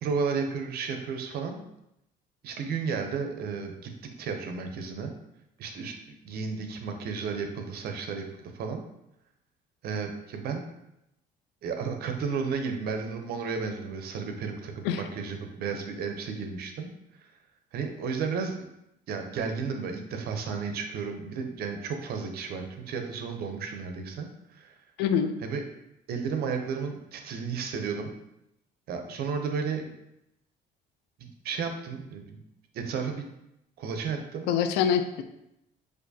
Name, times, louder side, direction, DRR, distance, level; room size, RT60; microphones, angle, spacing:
voice 1, 0.0-1.6 2.4-3.9 4.2-5.1 5.6-6.0 6.2-8.8 9.8-10.6 11.6-16.9 17.7-18.7 19.1-24.7 25.4-25.6 26.1-28.1 28.9-29.9 31.2-32.4 32.7-33.3 33.8-34.5, right 5 dB, 65° right, 5 dB, 0.6 m, -33 dB
voice 2, 25.0-25.4 34.5-35.2, left 8 dB, 90° left, 9 dB, 0.4 m, -25 dB
4.4 x 2.5 x 2.7 m, 0.83 s
cardioid pair, 110°, 17 cm